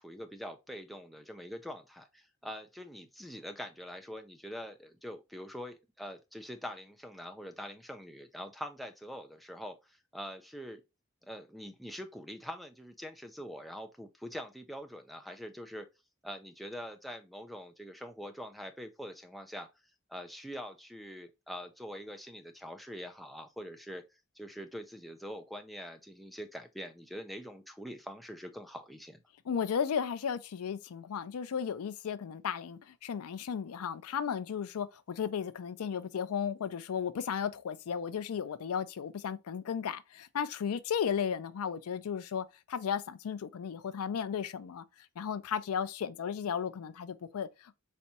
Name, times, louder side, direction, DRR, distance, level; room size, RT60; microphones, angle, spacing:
voice 1, 0.0-10.8 11.2-15.9 16.2-19.7 20.1-24.0 24.4-29.2, equal, ahead, 0.4 m, -44 dB
voice 2, 29.5-44.8 45.2-47.7, left 7 dB, 85° left, 0.4 m, -35 dB
4.2 x 3.4 x 2.7 m
head